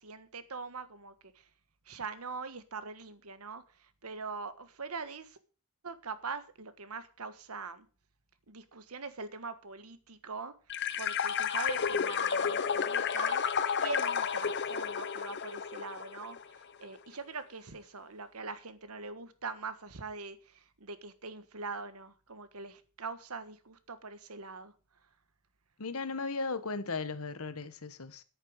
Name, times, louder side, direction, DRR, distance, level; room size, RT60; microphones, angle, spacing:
voice 1, 0.0-1.5 1.8-5.4 5.8-7.9 8.5-10.5 11.0-13.4 13.8-24.7, right 4 dB, 80° right, 1.5 m, -42 dB
sound 1, 10.7-16.4, left 7 dB, 55° left, 0.9 m, -31 dB
voice 2, 25.8-28.2, left 4 dB, 70° left, 1.3 m, -36 dB
10.5 x 8.9 x 6.4 m
head